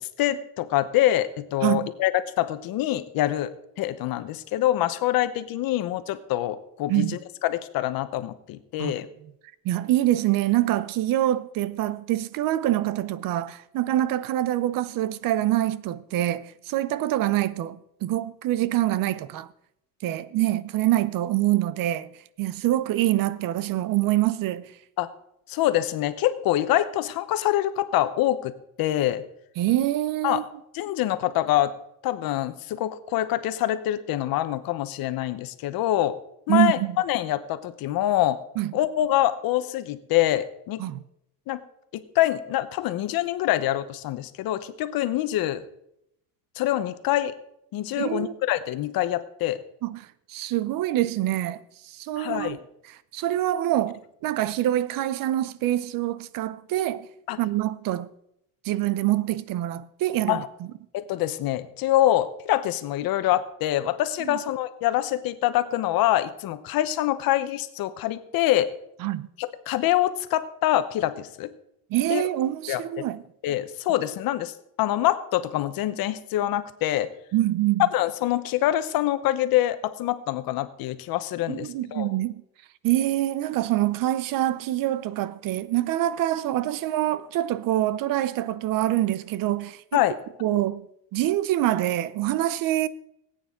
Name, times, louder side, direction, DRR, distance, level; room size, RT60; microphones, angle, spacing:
voice 1, 0.2-2.1 2.4-9.1 25.0-25.1 25.5-28.5 28.8-29.2 30.2-30.4 30.7-31.7 32.0-36.2 36.5-36.8 37.0-38.4 38.7-40.8 41.5-41.6 41.9-45.6 46.6-47.3 47.7-49.6 52.2-52.6 57.3-57.4 60.3-60.5 60.9-68.7 69.4-71.5 72.1-72.2 72.7-73.1 73.4-77.1 77.8-82.1 89.9-90.2, left 14 dB, 75° left, 1.0 m, -25 dB
voice 2, 9.6-19.5 20.0-22.1 22.4-24.7 29.6-30.4 36.5-37.0 38.6-38.7 40.8-41.0 48.0-48.3 49.8-52.6 53.1-57.1 57.4-58.1 58.6-60.4 64.2-64.4 69.0-69.3 71.9-73.2 77.3-77.9 81.5-82.4 82.8-90.0 90.4-90.8 91.1-92.9, right 14 dB, 65° right, 0.7 m, -25 dB
18.5 x 9.1 x 3.8 m
cardioid pair, 150°, 36 cm